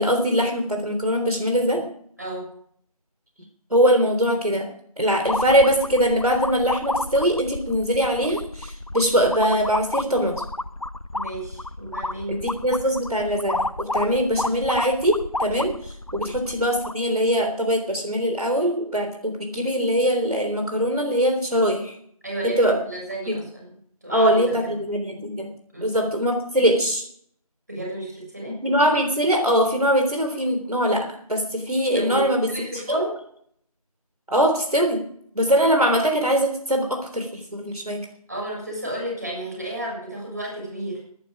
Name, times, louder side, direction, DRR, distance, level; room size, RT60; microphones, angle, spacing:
voice 1, 0.0-1.8 3.7-4.7 5.0-10.4 12.3-22.0 22.4-22.8 23.3-23.4 24.1-25.5 25.8-27.0 28.4-32.5 32.7-33.1 34.3-35.0 35.3-38.1, equal, 75° right, 3 dB, 3.6 m, -22 dB
voice 2, 2.2-2.5 11.1-12.5 16.2-16.3 22.2-23.7 24.0-24.6 25.7-26.0 27.7-28.6 31.9-33.1 38.3-41.0, right 1 dB, 30° right, -2 dB, 7.1 m, -32 dB
sound 1, 5.3-17.1, left 2 dB, 65° left, 0.9 m, -31 dB
22.0 x 11.5 x 5.0 m, 0.65 s
figure-of-eight pair, 180°, 19 cm